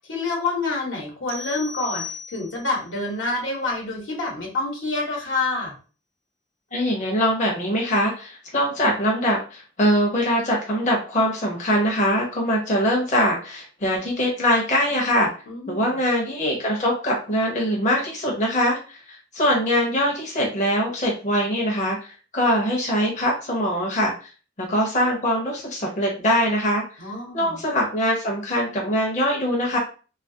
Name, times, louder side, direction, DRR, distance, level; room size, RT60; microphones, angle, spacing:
voice 1, 0.1-5.7 15.5-16.0 27.0-27.6, left 3 dB, 85° left, -1 dB, 1.0 m, -27 dB
sound 1, 1.3-2.8, left 4 dB, 90° right, 0.6 m, -36 dB
voice 2, 6.7-15.3 15.7-24.3 24.6-26.8 27.3-29.8, equal, 40° left, -1 dB, 0.7 m, -22 dB
2.7 x 2.4 x 2.6 m, 0.36 s
head